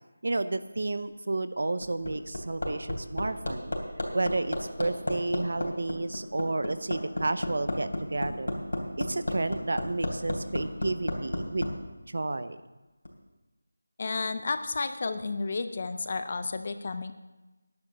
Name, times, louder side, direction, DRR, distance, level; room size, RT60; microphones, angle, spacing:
voice 1, 0.2-3.7 4.1-8.5 9.0-11.7 12.1-12.6, right 2 dB, 55° right, 12 dB, 0.7 m, -31 dB
Hammer, 1.6-11.7 13.0-13.1, left 1 dB, 85° left, 3.2 m, -32 dB
voice 2, 14.0-17.1, left 3 dB, 30° left, 10 dB, 0.5 m, -32 dB
10.5 x 10.0 x 6.3 m, 1.1 s
figure-of-eight pair, 175°, 0 cm